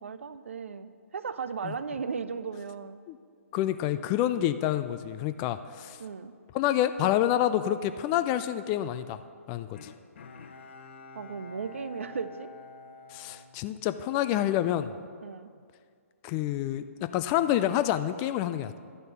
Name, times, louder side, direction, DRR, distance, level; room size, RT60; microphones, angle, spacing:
voice 1, 0.0-3.0 6.0-6.3 11.1-12.5 15.2-15.5, right 5 dB, 60° right, 13 dB, 0.5 m, -36 dB
voice 2, 3.5-6.0 6.5-9.2 9.5-9.9 13.1-14.9 16.2-18.8, left 12 dB, 20° left, 12 dB, 0.3 m, -28 dB
Bowed string instrument, 9.7-14.2 14.7-14.8, left 4 dB, 50° left, 0.8 m, -48 dB
10.5 x 5.4 x 7.9 m, 2.1 s
figure-of-eight pair, 125°, 8 cm